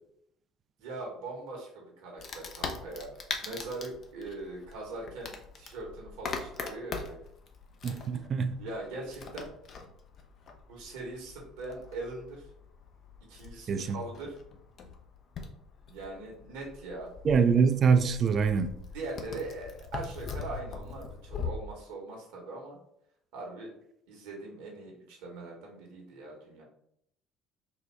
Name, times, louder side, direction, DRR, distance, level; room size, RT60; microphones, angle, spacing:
voice 1, 0.8-7.3 7.8-8.1 8.6-9.5 10.7-12.5 13.3-14.4 15.9-17.1 18.9-22.8 23.3-23.7 24.1-26.6, right 2 dB, 70° right, 1.1 m, -41 dB
Wood, 2.2-21.5, left 5 dB, 50° left, 0.5 m, -42 dB
voice 2, 7.8-8.6 13.7-14.0 17.2-18.8, right 5 dB, 45° right, 0.4 m, -24 dB
4.0 x 2.2 x 3.3 m
hypercardioid pair, 60°, 0 cm